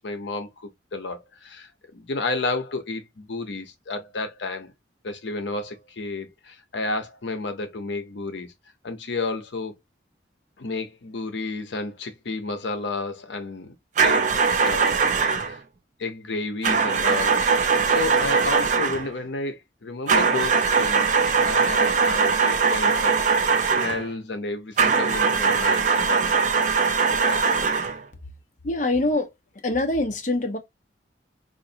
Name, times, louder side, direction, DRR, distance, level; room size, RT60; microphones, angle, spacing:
voice 1, 0.0-4.7 5.0-8.5 8.8-9.7 10.6-13.7 14.0-14.3 14.6-15.1 15.5-15.6 16.0-21.1 21.4-23.5 23.7-26.4 27.2-27.5, left 3 dB, 75° left, 0.7 m, -31 dB
sound 1, 14.0-15.6 16.6-19.1 20.1-24.1 24.8-28.0, right 5 dB, 40° right, 0.4 m, -21 dB
voice 2, 28.6-29.3 29.6-30.6, left 2 dB, 40° left, 0.7 m, -24 dB
3.9 x 2.5 x 2.6 m
head